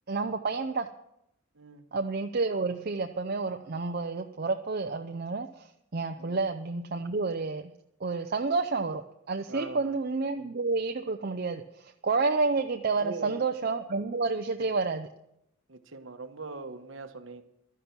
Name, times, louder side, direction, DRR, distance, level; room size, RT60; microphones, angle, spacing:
voice 1, 0.1-0.9 1.9-5.7 5.9-7.7 8.0-9.0 9.3-15.1, right 4 dB, 50° right, 5 dB, 0.6 m, -30 dB
voice 2, 1.5-1.9 6.2-6.4 9.5-9.9 13.0-13.4 15.7-17.4, right 3 dB, 65° right, 7 dB, 1.2 m, -41 dB
12.5 x 11.0 x 6.0 m, 0.81 s
head